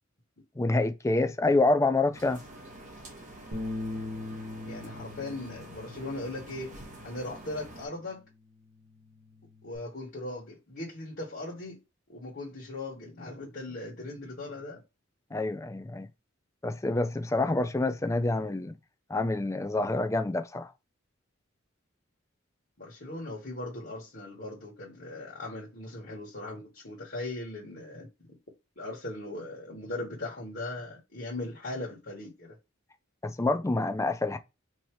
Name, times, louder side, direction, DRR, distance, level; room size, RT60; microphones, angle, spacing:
voice 1, 0.6-2.4 15.3-16.1 16.6-18.8 19.1-20.7 33.2-34.4, left 2 dB, 15° left, 0.4 m, -27 dB
sound 1, 2.1-7.9, right 1 dB, 40° right, 1.3 m, -47 dB
Bass guitar, 3.5-8.0 8.4-9.8, left 2 dB, 75° right, 1.7 m, -41 dB
voice 2, 4.6-6.7 7.0-8.2 9.6-11.8 12.1-14.8 22.8-28.1 28.8-32.5, left 2 dB, 50° left, 1.4 m, -39 dB
4.6 x 2.9 x 3.0 m
head